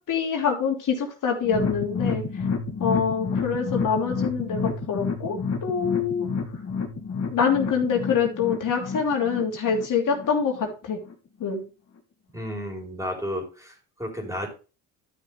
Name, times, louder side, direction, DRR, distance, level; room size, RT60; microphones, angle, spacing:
voice 1, 0.1-2.2 2.8-6.3 7.3-11.0 11.4-11.6, left 6 dB, 55° left, 1 dB, 3.0 m, -25 dB
sound 1, 1.4-10.7 11.0-11.1 11.5-11.6, left 5 dB, 40° left, 2.0 m, -30 dB
voice 2, 12.3-14.5, equal, 10° right, 1 dB, 3.8 m, -32 dB
12.0 x 6.4 x 3.3 m, 0.33 s
cardioid pair, 95°, 38 cm